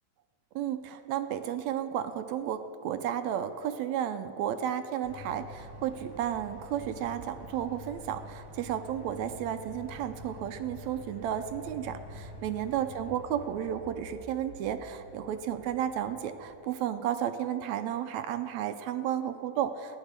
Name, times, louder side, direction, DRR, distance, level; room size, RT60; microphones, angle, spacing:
voice 1, 0.6-20.0, right 10 dB, 80° right, 10 dB, 1.8 m, -33 dB
sound 1, 5.0-16.5, equal, 10° right, 1.1 m, -47 dB
15.5 x 10.5 x 6.6 m, 2.7 s
omnidirectional pair, 3.4 m